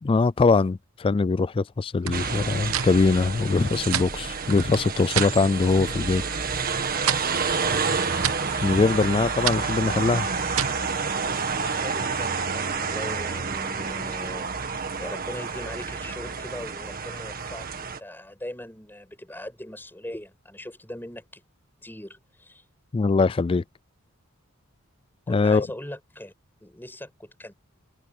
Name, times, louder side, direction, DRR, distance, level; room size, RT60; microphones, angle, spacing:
voice 1, 0.0-6.2 8.6-10.3 22.9-23.6 25.3-25.7, left 4 dB, 25° left, 0.3 m, -22 dB
sound 1, 2.0-5.4 5.7-6.3 6.6-10.9, right 8 dB, 80° right, 1.1 m, -31 dB
sound 2, 2.1-18.0, right 5 dB, 45° right, 1.7 m, -29 dB
Trumpet, 5.5-13.1, left 7 dB, 75° left, 2.5 m, -45 dB
voice 2, 7.6-7.9 11.7-21.4 21.8-22.6 25.3-26.3 26.6-27.5, left 1 dB, 10° left, 7.4 m, -40 dB
head